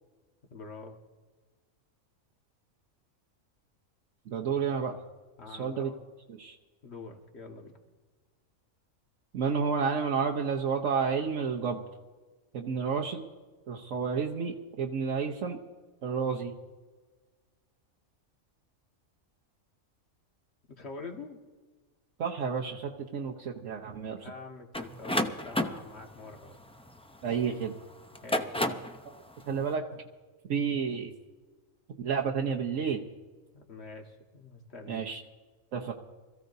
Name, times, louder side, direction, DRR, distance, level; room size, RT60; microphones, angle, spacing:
voice 1, 0.5-1.0 5.4-6.0 6.8-7.7 20.7-21.4 24.2-26.6 28.2-28.9 33.5-35.1, left 3 dB, 50° left, 2 dB, 1.9 m, -45 dB
voice 2, 4.3-5.0 5.5-5.9 6.3-6.5 9.3-11.8 12.5-13.2 13.7-15.6 16.0-16.5 22.2-24.3 27.2-27.7 29.5-29.8 30.5-31.1 32.0-33.0 34.9-35.2 35.7-35.9, right 6 dB, 70° right, -1 dB, 1.3 m, -30 dB
sound 1, 24.7-27.5 28.1-29.0, left 1 dB, 10° left, 0.4 m, -31 dB
26.0 x 15.5 x 2.7 m, 1.3 s
omnidirectional pair, 1.4 m